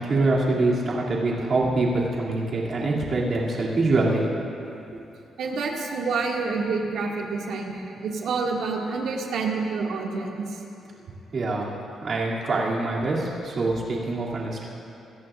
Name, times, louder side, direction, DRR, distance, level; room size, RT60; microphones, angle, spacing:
voice 1, 0.0-4.3 4.9-5.0 11.3-11.7 12.0-14.6, right 2 dB, 45° right, -5 dB, 2.7 m, -24 dB
voice 2, 5.4-10.6, right 4 dB, 75° right, -1 dB, 2.1 m, -28 dB
26.5 x 14.0 x 2.5 m, 2.8 s
cardioid pair, 130°, 0 cm